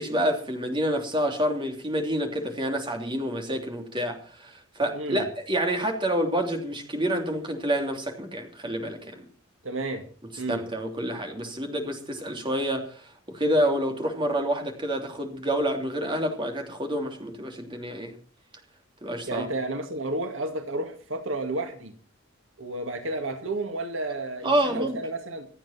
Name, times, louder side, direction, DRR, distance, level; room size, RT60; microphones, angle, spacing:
voice 1, 0.0-9.3 10.5-18.1 19.0-19.5 24.4-25.0, equal, 25° right, 3.2 m, -28 dB
voice 2, 4.9-5.3 9.6-10.1 10.4-10.6 19.3-21.9 22.6-25.5, right 2 dB, 70° right, 2.2 m, -31 dB
26.5 x 9.1 x 4.4 m
head